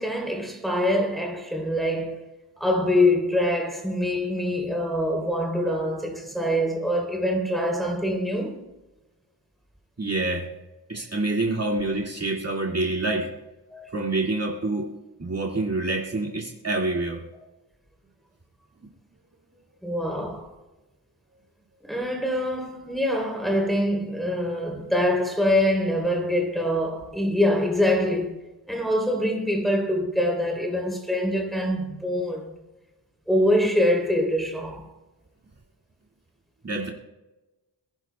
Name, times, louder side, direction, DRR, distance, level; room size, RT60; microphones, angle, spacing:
voice 1, 0.0-2.2 2.6-8.6 11.0-11.1 13.7-13.9 19.8-20.5 21.9-28.4 28.7-32.6 33.3-34.9, left 1 dB, ahead, 3.5 m, -24 dB
voice 2, 10.0-10.5 10.9-13.3 13.9-14.9 15.2-17.2 36.6-36.9, right 2 dB, 35° right, 2.2 m, -27 dB
27.0 x 10.5 x 2.3 m
cardioid pair, 60°, 45 cm